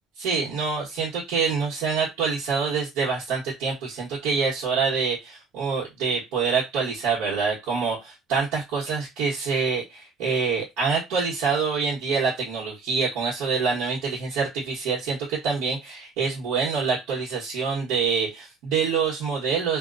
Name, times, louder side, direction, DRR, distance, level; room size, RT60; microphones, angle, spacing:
voice 1, 0.2-19.8, right 5 dB, 80° right, -6 dB, 1.2 m, -26 dB
2.8 x 2.2 x 2.5 m, 0.21 s
cardioid pair, 175°, 0 cm